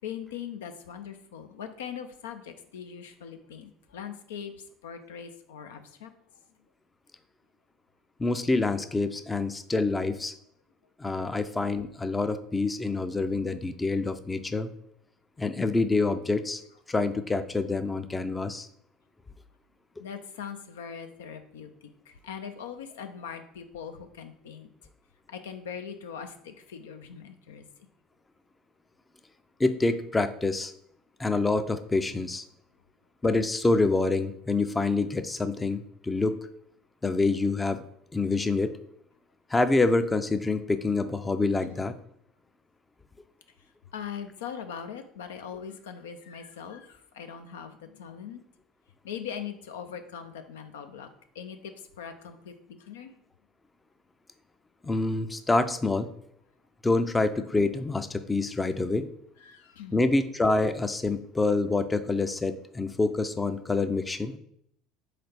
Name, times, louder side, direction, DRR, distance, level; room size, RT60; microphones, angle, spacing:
voice 1, 0.0-6.1 20.0-24.7 25.3-27.6 41.7-41.8 43.9-48.4 49.0-51.1 51.3-53.1 59.4-60.0, left 7 dB, 80° left, 7 dB, 0.4 m, -41 dB
voice 2, 8.2-10.3 11.0-14.7 15.4-16.6 16.9-18.7 29.6-30.7 31.2-32.4 33.2-36.4 37.0-37.8 38.1-38.8 39.5-41.9 54.8-56.1 56.8-59.1 59.9-64.3, left 3 dB, 15° left, 10 dB, 0.4 m, -26 dB
3.8 x 3.3 x 4.2 m, 0.70 s
hypercardioid pair, 70°, 0 cm